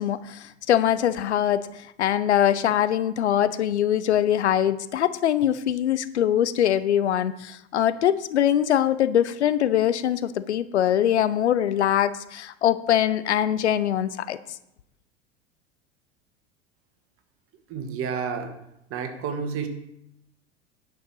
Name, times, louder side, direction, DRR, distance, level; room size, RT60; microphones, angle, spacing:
voice 1, 0.0-14.4, left 10 dB, 70° left, 15 dB, 0.6 m, -23 dB
voice 2, 17.7-18.5 18.9-19.7, right 6 dB, 40° right, 6 dB, 1.7 m, -30 dB
10.5 x 5.3 x 6.3 m, 0.80 s
figure-of-eight pair, 75°, 35 cm